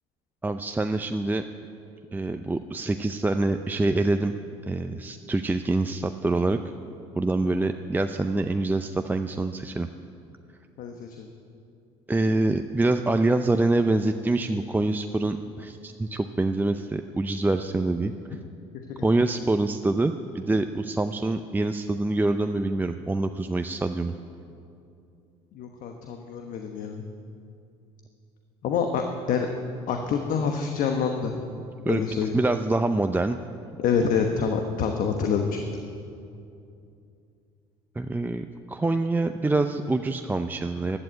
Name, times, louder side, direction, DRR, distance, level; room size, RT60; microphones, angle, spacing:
voice 1, 0.4-1.4 2.1-4.3 4.7-6.6 7.2-9.9 12.1-18.1 19.0-24.1 31.9-33.4 38.0-41.0, right 2 dB, 10° right, 7 dB, 0.6 m, -25 dB
voice 2, 10.8-11.3 25.5-27.0 28.6-29.0 29.3-29.5 29.9-31.4 31.9-32.3 33.8-35.5, left 6 dB, 60° left, 4 dB, 1.2 m, -26 dB
12.0 x 12.0 x 8.1 m, 2.6 s
hypercardioid pair, 65°, 16 cm